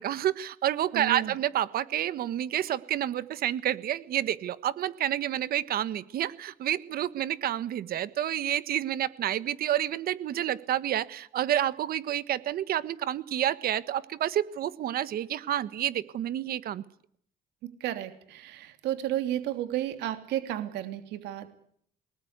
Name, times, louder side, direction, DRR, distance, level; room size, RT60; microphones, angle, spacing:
voice 1, 0.0-16.8, right 11 dB, 60° right, 16 dB, 1.5 m, -29 dB
voice 2, 0.9-1.3 17.6-21.5, right 13 dB, 85° right, 9 dB, 3.1 m, -32 dB
29.0 x 20.0 x 8.2 m, 0.66 s
cardioid pair, 110°, 17 cm